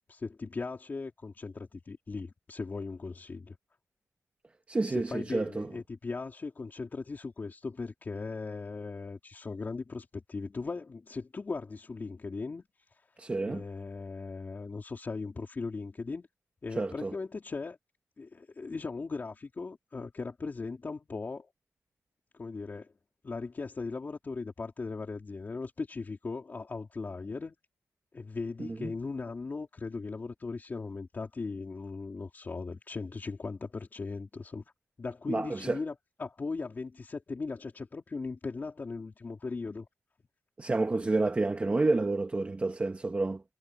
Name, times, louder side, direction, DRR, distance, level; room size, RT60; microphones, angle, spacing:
voice 1, 0.1-3.6 4.8-12.6 12.9-13.1 13.5-16.3 16.6-17.8 18.2-21.5 22.3-22.9 23.2-27.5 28.1-34.6 35.0-35.9 36.2-39.9, left 4 dB, 35° left, 3.6 m, -38 dB
voice 2, 4.7-5.7 13.2-13.6 16.8-17.1 28.6-28.9 35.3-35.8 40.6-43.4, right 3 dB, 25° right, 1.6 m, -29 dB
wide cardioid pair, 155°, 6 cm